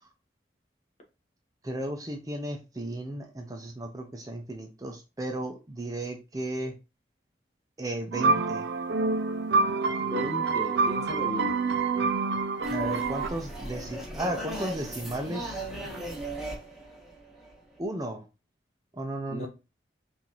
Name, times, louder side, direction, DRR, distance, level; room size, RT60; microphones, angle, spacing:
voice 1, 1.6-6.8 7.8-8.7 12.7-15.6 17.8-18.3 18.9-19.5, right 1 dB, 20° right, 0.5 m, -34 dB
sound 1, 8.1-13.3, right 4 dB, 75° right, 0.5 m, -27 dB
voice 2, 10.0-11.6 19.3-19.5, left 1 dB, 40° left, 1.2 m, -36 dB
sound 2, 12.6-17.8, right 1 dB, ahead, 1.0 m, -38 dB
5.5 x 2.6 x 3.0 m
head